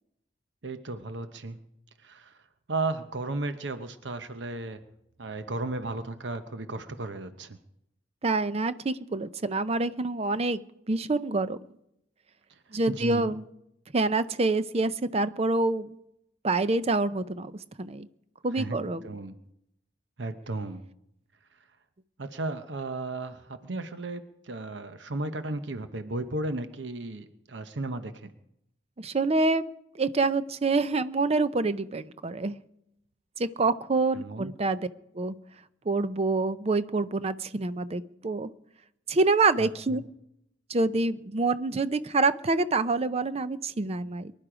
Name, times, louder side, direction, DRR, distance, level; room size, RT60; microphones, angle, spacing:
voice 1, 0.6-1.6 2.0-2.4 2.7-4.8 5.2-7.6 12.5-12.6 12.9-13.3 18.5-18.8 19.0-19.3 20.2-20.8 22.2-28.3 34.1-34.5 39.6-40.0, right 2 dB, 85° right, 10 dB, 0.9 m, -34 dB
voice 2, 8.2-10.6 10.9-11.6 12.7-13.4 13.9-15.9 16.4-17.5 17.8-18.1 18.4-19.0 29.0-29.6 30.0-32.5 33.4-34.9 35.1-35.3 35.9-38.5 39.1-40.0 40.7-44.3, right 3 dB, 35° right, 13 dB, 0.6 m, -26 dB
24.0 x 11.0 x 5.0 m, 0.81 s
head